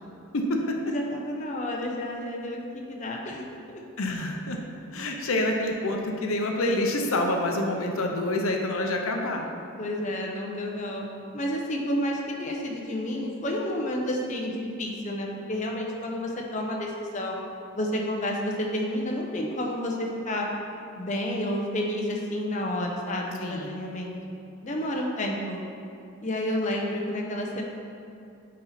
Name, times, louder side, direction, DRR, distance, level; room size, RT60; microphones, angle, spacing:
voice 1, 0.3-0.8 4.0-4.6 4.9-9.4 23.4-23.7, left 1 dB, 80° left, 2 dB, 0.7 m, -27 dB
voice 2, 0.9-3.9 9.8-11.1 11.3-17.4 17.7-20.5 21.0-24.1 24.6-25.6 26.2-27.6, left 1 dB, 35° left, -1 dB, 0.7 m, -30 dB
9.9 x 4.2 x 4.2 m, 2.6 s
head